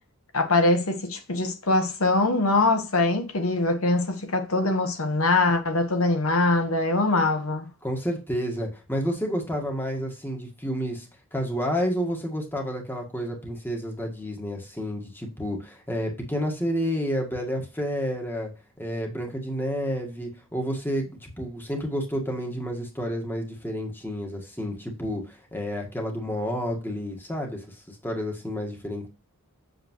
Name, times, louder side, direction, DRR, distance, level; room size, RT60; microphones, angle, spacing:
voice 1, 0.3-7.6, left 2 dB, 75° left, 1.3 m, -23 dB
voice 2, 7.8-11.1 11.3-18.5 18.8-29.1, equal, 10° left, 1.6 m, -30 dB
7.8 x 6.6 x 3.1 m
head